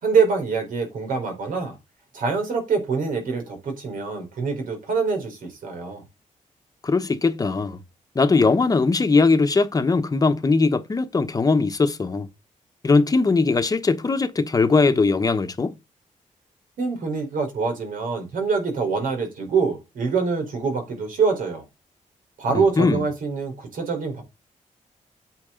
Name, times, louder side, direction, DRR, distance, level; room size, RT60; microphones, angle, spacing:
voice 1, 0.0-1.8 2.1-6.0 16.8-21.6 22.4-24.2, right 5 dB, 85° right, 4.2 m, -25 dB
voice 2, 6.8-7.8 8.1-12.3 12.8-15.7 22.5-23.0, left 4 dB, 25° left, 1.0 m, -20 dB
8.9 x 7.4 x 3.8 m
wide cardioid pair, 145°, 14 cm